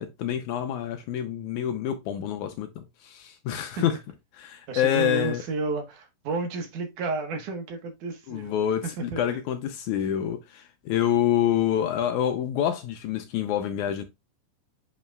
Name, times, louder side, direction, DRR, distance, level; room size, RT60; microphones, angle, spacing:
voice 1, 0.0-4.0 4.4-5.4 8.3-14.0, left 10 dB, 75° left, 1.9 m, -27 dB
voice 2, 4.7-8.5 8.8-9.2, right 3 dB, 70° right, 2.7 m, -31 dB
7.6 x 5.3 x 2.3 m
omnidirectional pair, 3.9 m